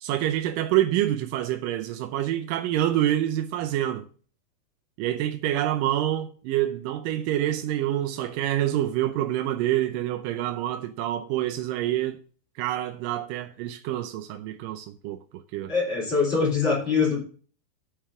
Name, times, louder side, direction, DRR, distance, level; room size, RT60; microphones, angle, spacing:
voice 1, 0.0-4.1 5.0-12.2 12.6-15.7, right 13 dB, 80° right, 2.0 m, -27 dB
voice 2, 15.7-17.2, left 5 dB, 30° left, 3.6 m, -23 dB
9.1 x 4.9 x 7.8 m
omnidirectional pair, 4.4 m